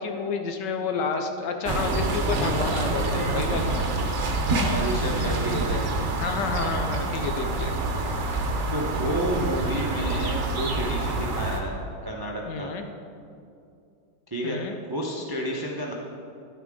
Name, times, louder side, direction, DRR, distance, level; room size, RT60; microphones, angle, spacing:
voice 1, 0.0-3.8 6.2-7.7 12.5-12.8 14.4-14.7, left 5 dB, 70° left, 5 dB, 1.2 m, -30 dB
sound 1, 1.6-11.6, right 2 dB, 50° right, 0.9 m, -26 dB
voice 2, 4.4-6.2 8.7-12.7 14.3-14.6 14.9-15.9, equal, 35° right, -2 dB, 0.3 m, -31 dB
11.0 x 9.8 x 3.7 m, 2.5 s
omnidirectional pair, 2.2 m